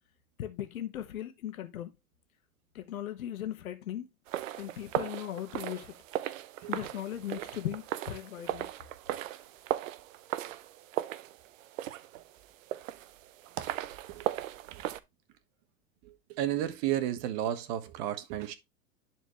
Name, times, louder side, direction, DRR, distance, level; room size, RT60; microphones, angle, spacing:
voice 1, 0.4-1.9 2.7-4.0 4.6-5.9 6.7-8.6, left 11 dB, 75° left, 1.5 m, -38 dB
sound 1, 4.3-15.0, right 13 dB, 65° right, 0.8 m, -37 dB
voice 2, 16.0-18.5, right 12 dB, 45° right, 1.4 m, -33 dB
10.5 x 4.4 x 3.1 m
hypercardioid pair, 110°, 43 cm